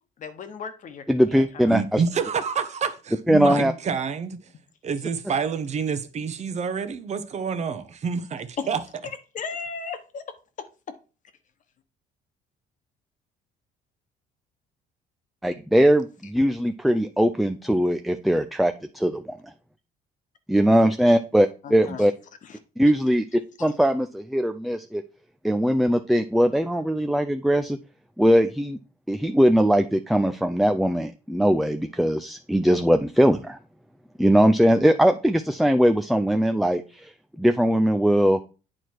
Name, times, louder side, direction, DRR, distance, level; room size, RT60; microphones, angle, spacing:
voice 1, 0.2-1.0 1.3-1.8 8.6-8.7 9.3-10.2 10.6-10.7 21.6-22.1 22.4-22.6 23.6-23.7, left 5 dB, 50° left, 1.1 m, -35 dB
voice 2, 1.1-2.0 3.3-3.7 15.4-19.5 20.5-22.1 22.8-25.0 25.4-27.8 28.2-28.8 29.1-33.6 34.2-38.4, equal, ahead, 0.4 m, -21 dB
voice 3, 1.7-4.4 4.8-8.8, right 6 dB, 40° right, 1.0 m, -28 dB
8.9 x 4.6 x 4.6 m
cardioid pair, 110°, 17 cm